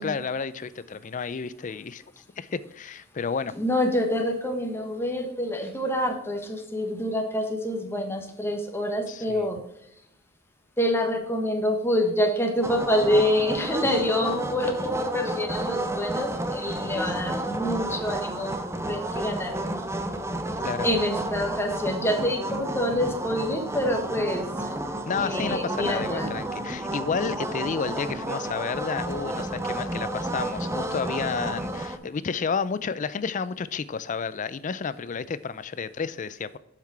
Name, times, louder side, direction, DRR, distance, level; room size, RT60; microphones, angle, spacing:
voice 1, 0.0-2.0 2.4-3.5 9.1-9.5 20.6-20.9 25.1-36.6, left 5 dB, 40° left, 0.4 m, -31 dB
voice 2, 3.5-9.6 10.8-19.6 20.8-24.5 25.2-26.3, left 1 dB, 10° left, 1.2 m, -26 dB
sound 1, 12.6-32.0, right 1 dB, 15° right, 0.7 m, -31 dB
7.3 x 5.9 x 4.7 m
head